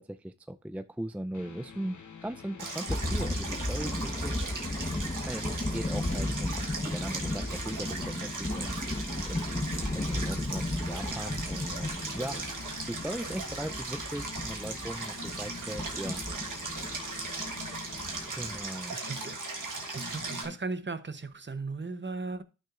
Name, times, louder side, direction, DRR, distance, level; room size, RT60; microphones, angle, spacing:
voice 1, 0.0-1.9 2.2-4.4 5.3-12.4 12.9-16.2 18.3-19.0, right 1 dB, 5° right, 0.4 m, -39 dB
sound 1, 1.3-20.5, left 5 dB, 70° left, 1.0 m, -47 dB
Stream, 2.6-20.4, right 3 dB, 80° right, 1.4 m, -38 dB
sound 2, 2.9-18.6, left 1 dB, 20° left, 1.1 m, -35 dB
voice 2, 18.9-19.4 19.9-22.4, right 3 dB, 35° right, 0.8 m, -37 dB
12.0 x 6.0 x 2.5 m
cardioid pair, 50°, 31 cm